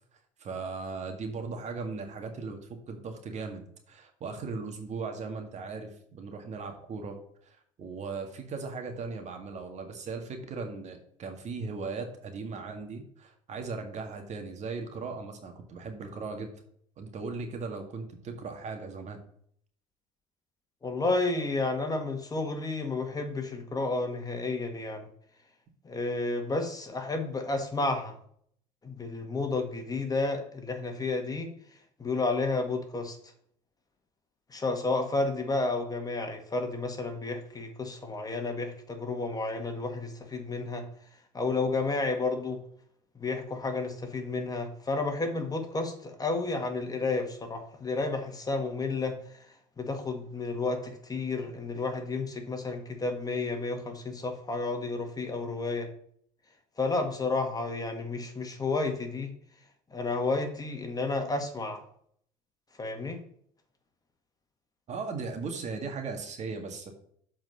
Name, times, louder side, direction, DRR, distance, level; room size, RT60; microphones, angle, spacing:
voice 1, 0.4-16.5 17.0-19.2 64.9-66.9, right 4 dB, 50° right, 5 dB, 1.9 m, -38 dB
voice 2, 20.8-25.1 25.8-28.2 28.8-31.5 32.0-33.2 34.5-40.9 41.3-42.6 43.2-49.5 49.8-55.9 56.8-59.3 59.9-61.8 62.8-63.2, left 3 dB, 25° left, 5 dB, 1.8 m, -31 dB
7.5 x 4.5 x 6.8 m, 0.63 s
supercardioid pair, 85°, 15 cm